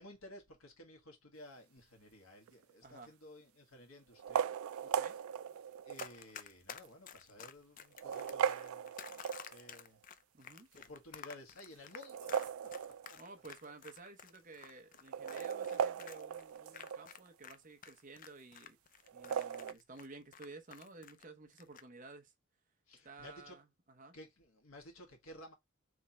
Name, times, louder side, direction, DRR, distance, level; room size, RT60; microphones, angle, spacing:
voice 1, 0.0-5.1 5.8-10.0 10.7-12.7 13.1-13.2 22.9-23.6 24.1-25.5, left 1 dB, 80° left, 1.6 m, -55 dB
sound 1, 2.5-2.9 4.1-6.2 6.8-6.9 7.8-9.8 11.9-13.4 13.7-13.8 14.0-14.1 14.9-17.2 19.1-19.7, right 8 dB, 80° right, 0.3 m, -38 dB
voice 2, 2.8-3.1 4.8-5.2 10.3-10.7 13.2-18.8 19.1-22.3 23.0-24.2, right 3 dB, 40° right, 0.8 m, -54 dB
Run, 5.9-17.6 17.8-21.2 21.5-21.8, left 8 dB, 40° left, 0.4 m, -51 dB
3.6 x 3.3 x 4.1 m
head